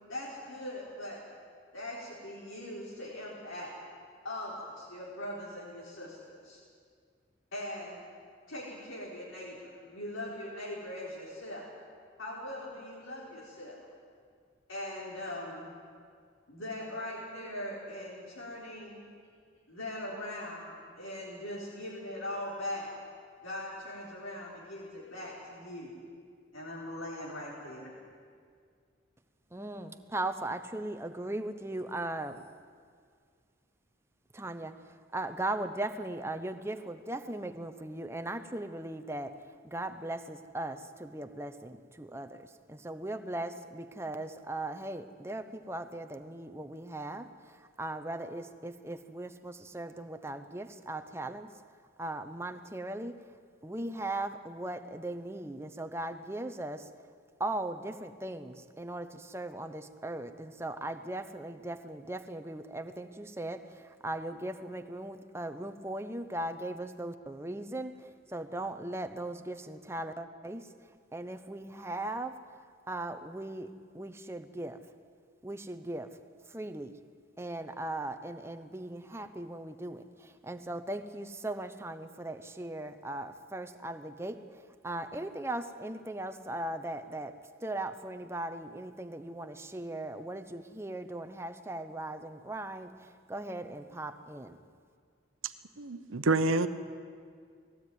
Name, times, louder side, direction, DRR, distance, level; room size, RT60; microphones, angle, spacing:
voice 1, 0.1-1.2 1.7-3.7 4.2-6.2 6.4-6.6 7.5-8.1 8.5-11.7 12.2-13.8 14.7-15.7 16.5-19.0 19.7-22.9 23.4-25.9 26.5-28.0, left 1 dB, 90° left, -5 dB, 4.1 m, -40 dB
voice 2, 29.5-32.4 34.3-34.8 35.1-39.3 39.6-51.5 52.0-53.2 53.6-56.9 57.4-68.0 68.3-70.7 71.1-72.4 72.9-74.8 75.4-76.1 76.5-76.9 77.4-84.4 84.8-87.3 87.6-94.6, right 1 dB, 15° right, 8 dB, 0.8 m, -38 dB
voice 3, 95.8-96.7, right 3 dB, 85° right, 11 dB, 0.9 m, -27 dB
19.5 x 16.0 x 9.4 m, 2.1 s
head